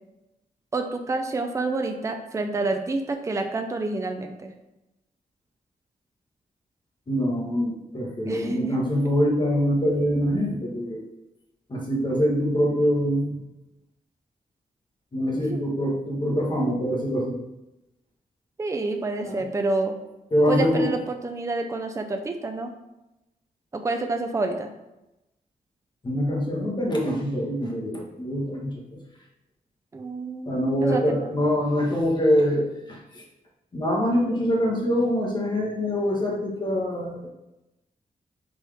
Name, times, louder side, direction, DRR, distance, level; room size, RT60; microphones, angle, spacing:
voice 1, 0.7-4.5 8.3-8.9 15.3-15.7 18.6-20.0 20.5-22.7 23.7-24.7 29.9-31.4, right 3 dB, 20° right, 5 dB, 0.5 m, -28 dB
voice 2, 7.1-11.0 11.7-13.4 15.1-17.4 19.2-19.4 20.3-20.9 26.0-29.0 30.5-33.2 33.7-37.3, equal, 30° left, -2 dB, 1.6 m, -24 dB
7.4 x 4.6 x 3.5 m, 0.94 s
wide cardioid pair, 165°, 15 cm